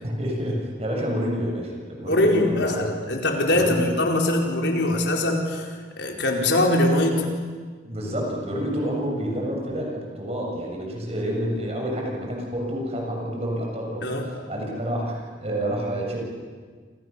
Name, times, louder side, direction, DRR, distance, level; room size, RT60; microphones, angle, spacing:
voice 1, 0.0-2.8 3.5-3.8 7.8-14.0 14.5-16.2, equal, 35° right, 0 dB, 6.9 m, -28 dB
voice 2, 2.1-7.3 14.0-14.3, left 1 dB, 75° left, 1 dB, 4.6 m, -22 dB
29.0 x 28.0 x 6.9 m, 1.6 s
head